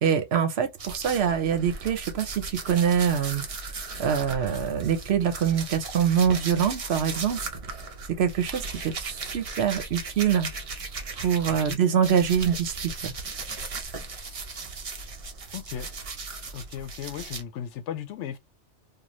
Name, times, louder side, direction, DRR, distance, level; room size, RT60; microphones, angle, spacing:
voice 1, 0.0-3.4 4.0-7.4 8.1-10.5 11.2-13.1, right 8 dB, 65° right, 0.9 m, -24 dB
sound 1, 0.8-11.7 12.0-17.4, right 4 dB, 45° right, 0.5 m, -37 dB
voice 2, 11.5-11.8 15.5-15.9 16.5-18.4, left 9 dB, 90° left, 0.9 m, -36 dB
2.5 x 2.3 x 3.0 m
omnidirectional pair, 1.2 m